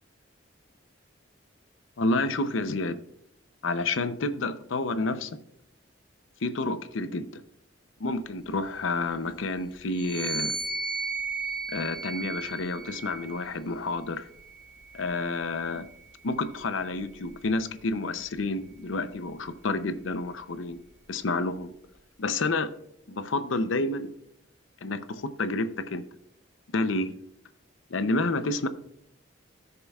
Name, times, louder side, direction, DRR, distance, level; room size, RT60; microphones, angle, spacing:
voice 1, 2.0-3.0 3.6-5.4 6.4-7.4 8.0-10.6 11.7-14.3 14.9-15.9 16.2-20.8 21.1-21.7 22.2-22.7 23.1-24.1 24.8-26.1 26.7-27.1 27.9-28.7, left 2 dB, 80° left, 12 dB, 0.6 m, -29 dB
sound 1, 9.9-13.5 14.3-15.9, right 3 dB, 75° right, 2.2 m, -35 dB
16.5 x 6.7 x 2.4 m, 0.76 s
head